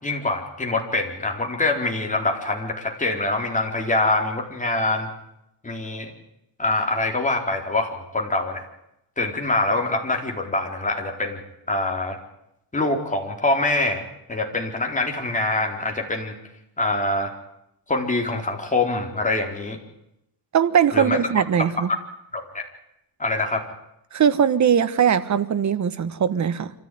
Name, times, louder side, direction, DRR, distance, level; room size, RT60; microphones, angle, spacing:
voice 1, 0.0-5.1 5.6-6.1 6.6-8.7 9.2-11.4 11.7-12.2 12.7-14.0 14.3-16.3 16.8-17.3 17.9-19.8 20.9-21.2 22.3-22.7 23.2-23.6, left 2 dB, 20° left, 2 dB, 4.3 m, -24 dB
voice 2, 20.5-21.9 24.1-26.7, right 8 dB, 45° right, 12 dB, 1.4 m, -20 dB
26.0 x 14.5 x 9.5 m, 0.83 s
cardioid pair, 110°, 39 cm